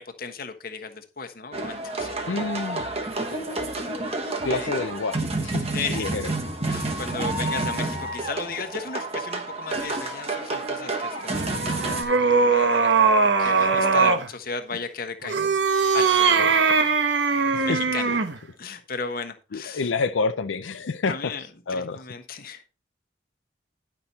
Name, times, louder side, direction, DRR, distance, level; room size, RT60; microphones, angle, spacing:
voice 1, 0.0-2.1 4.5-4.7 5.7-6.1 6.7-12.9 13.2-15.5 15.9-16.9 17.6-18.2 18.6-19.9 21.1-21.4 21.7-22.6, left 5 dB, 50° left, 1.2 m, -35 dB
sound 1, 1.5-12.0, right 2 dB, 35° right, 1.3 m, -29 dB
voice 2, 2.3-2.9 3.2-3.7 4.4-6.3 13.4-13.7 17.5-18.2 18.6-18.8 19.5-21.3 21.7-22.1, left 4 dB, 85° left, 0.5 m, -29 dB
sound 2, 11.3-14.3 15.2-18.4, right 4 dB, 70° right, 1.0 m, -21 dB
10.5 x 5.9 x 4.1 m
head